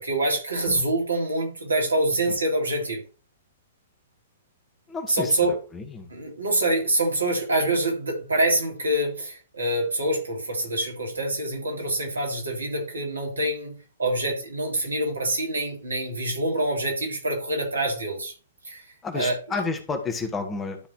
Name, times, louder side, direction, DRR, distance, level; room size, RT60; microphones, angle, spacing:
voice 1, 0.0-3.0 5.1-5.6 6.1-13.7 14.0-18.3 18.6-18.8 19.1-19.4, right 1 dB, 80° right, 0 dB, 3.2 m, -25 dB
voice 2, 4.9-6.1 19.0-20.8, left 4 dB, 15° left, 5 dB, 1.7 m, -31 dB
12.0 x 3.9 x 4.6 m, 0.36 s
figure-of-eight pair, 115°, 0 cm